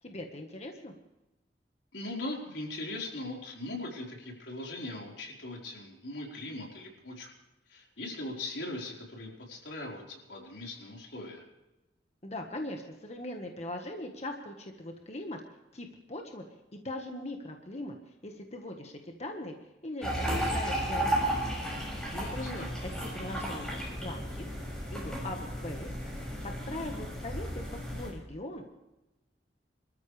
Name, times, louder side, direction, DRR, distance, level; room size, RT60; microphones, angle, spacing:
voice 1, 0.0-0.9 12.2-15.4 15.7-16.4 16.7-19.5 19.8-21.3 21.8-24.4 24.9-25.9 26.4-27.6 27.9-28.7, left 1 dB, 40° left, 3 dB, 1.5 m, -40 dB
voice 2, 1.9-7.3 7.7-11.4 22.1-22.7, left 2 dB, 90° left, -1 dB, 4.6 m, -40 dB
sound 1, 20.0-28.1, right 1 dB, 5° left, 6.6 m, -34 dB
25.5 x 14.0 x 3.4 m, 0.99 s
head